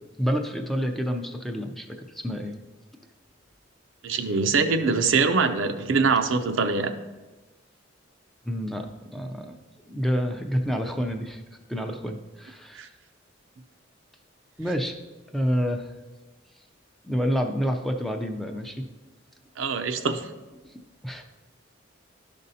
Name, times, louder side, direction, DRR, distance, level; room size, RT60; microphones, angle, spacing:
voice 1, 0.2-2.6 8.5-9.6 9.9-11.4 11.7-12.9 14.6-15.0 15.3-15.9 17.0-18.8 20.6-20.7 21.0-21.2, equal, ahead, 3 dB, 0.5 m, -28 dB
voice 2, 4.0-6.9 12.7-12.9 19.6-20.3, right 4 dB, 75° right, 8 dB, 0.6 m, -23 dB
12.0 x 5.3 x 2.8 m, 1.2 s
head